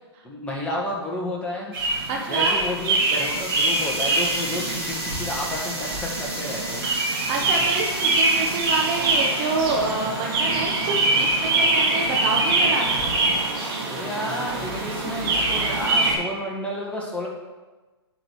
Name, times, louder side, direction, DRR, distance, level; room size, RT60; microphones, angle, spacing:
voice 1, 0.2-1.8 2.3-6.9 13.8-17.3, left 1 dB, 10° left, -3 dB, 2.0 m, -31 dB
sound 1, 1.7-16.1, right 2 dB, 50° right, 3.2 m, -24 dB
voice 2, 2.1-2.6 7.3-12.9, right 3 dB, 35° right, 1 dB, 1.1 m, -27 dB
sound 2, 2.7-9.9, right 1 dB, 10° right, 2.9 m, -33 dB
8.8 x 5.2 x 6.4 m, 1.2 s
hypercardioid pair, 125°, 14 cm